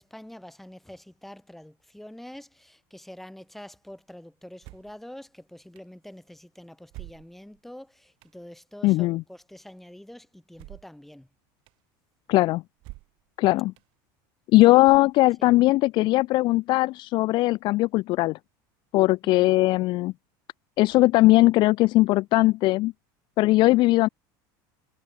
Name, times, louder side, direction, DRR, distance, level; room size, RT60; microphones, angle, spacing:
voice 1, 0.0-11.3 14.6-14.9 15.4-15.5 19.2-19.6, left 1 dB, ahead, 4.2 m, -46 dB
sound 1, 4.6-5.0 5.8-5.9 6.9-7.6 8.2-8.4 10.5-11.0 11.7-11.8 12.8-13.3 13.8-13.9 14.8-15.4, right 23 dB, 50° right, 2.1 m, -46 dB
voice 2, 8.8-9.2 12.3-12.6 13.4-13.7 14.5-18.4 18.9-20.1 20.8-22.9 23.4-24.1, left 19 dB, 45° left, 0.7 m, -19 dB
supercardioid pair, 150°, 11 cm